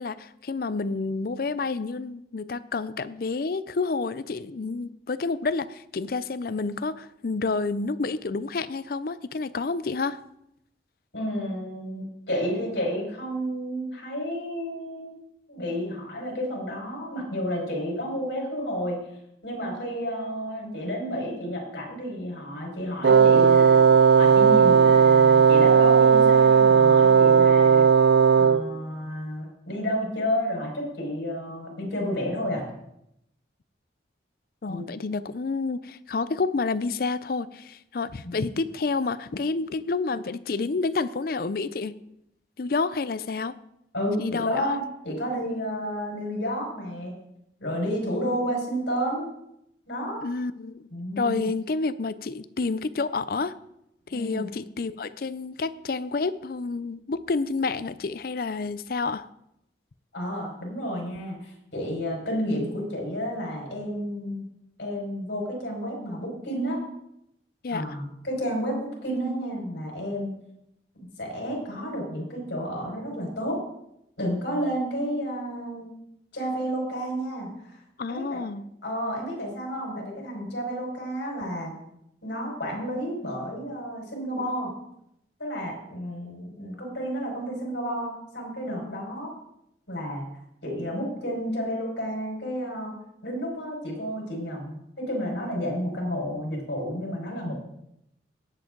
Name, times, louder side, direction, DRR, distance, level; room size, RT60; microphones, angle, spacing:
voice 1, 0.0-10.2 34.6-41.9 42.6-43.6 44.2-44.8 50.2-50.8 51.2-53.5 54.1-59.3 67.6-68.0 78.0-78.6, left 4 dB, 55° left, 16 dB, 0.5 m, -29 dB
voice 2, 11.1-15.2 15.5-19.0 19.4-23.9 24.2-27.9 28.4-32.6 34.7-34.8 38.2-38.4 43.9-47.1 47.6-49.3 49.9-50.2 50.9-51.5 54.1-54.5 60.1-64.4 64.8-66.8 67.7-70.3 71.2-73.6 74.2-75.9 76.3-77.8 78.1-78.4 78.8-81.7 82.2-84.7 85.4-89.3 89.9-90.2 90.6-92.9 93.2-97.6, equal, 75° left, -1 dB, 5.1 m, -31 dB
Wind instrument woodwind instrument, 23.0-28.7, right 6 dB, 70° right, 0.5 m, -16 dB
18.0 x 7.8 x 3.9 m, 0.80 s
head